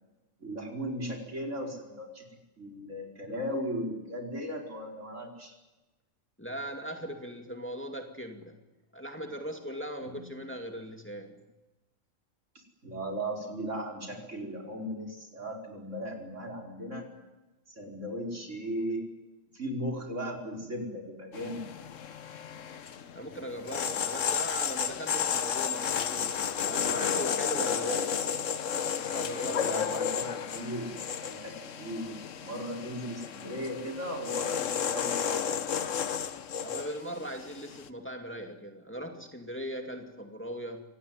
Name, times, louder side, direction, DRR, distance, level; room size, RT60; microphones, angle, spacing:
voice 1, 0.4-2.3 2.6-5.6 10.0-10.3 12.8-17.0 17.7-19.0 19.5-21.6 29.5-35.7, equal, 70° right, 1 dB, 5.4 m, -37 dB
voice 2, 6.4-8.6 8.9-11.4 23.2-28.3 29.0-29.9 36.6-40.8, equal, 10° left, 3 dB, 2.3 m, -39 dB
sound 1, 21.3-37.9, left 7 dB, 75° left, 1.4 m, -32 dB
26.0 x 18.5 x 9.6 m, 1.1 s
omnidirectional pair, 1.3 m